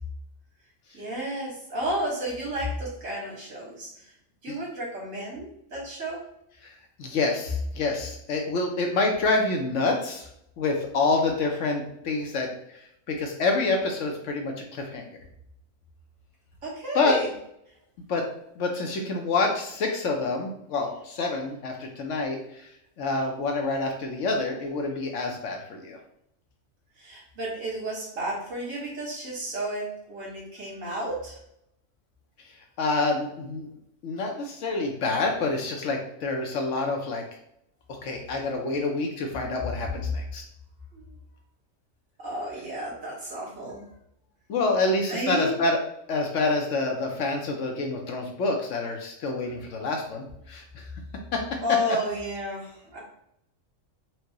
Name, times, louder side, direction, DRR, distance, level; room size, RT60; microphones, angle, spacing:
voice 1, 0.9-4.1 4.4-6.2 16.6-17.3 27.0-31.4 40.9-41.2 42.2-43.8 45.1-45.5 51.6-53.0, equal, 70° right, -4 dB, 1.9 m, -32 dB
voice 2, 7.0-10.3 10.6-12.5 13.1-15.0 16.9-17.2 18.1-18.2 18.6-22.4 23.0-26.0 32.8-33.7 34.0-37.2 37.9-40.4 44.5-45.8 46.1-50.8 51.3-51.4, left 3 dB, 70° left, 2 dB, 1.0 m, -27 dB
4.5 x 2.2 x 2.8 m, 0.77 s
omnidirectional pair, 1.4 m